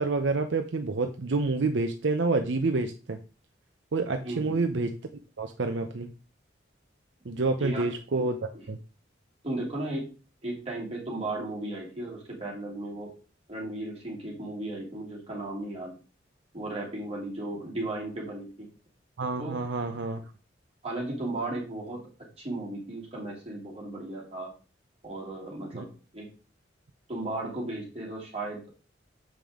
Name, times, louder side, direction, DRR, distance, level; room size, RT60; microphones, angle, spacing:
voice 1, 0.0-3.2 3.9-4.9 5.4-6.1 7.2-8.8 19.2-20.2 25.7-25.9, right 3 dB, 75° right, 6 dB, 0.6 m, -28 dB
voice 2, 4.2-4.6 7.6-7.9 9.4-10.1 10.4-13.1 13.5-15.9 16.5-18.7 19.4-19.6 20.8-22.1 22.4-24.5 25.0-26.3 27.1-28.6, right 2 dB, 35° right, -4 dB, 2.9 m, -35 dB
7.5 x 5.2 x 3.7 m, 0.35 s
head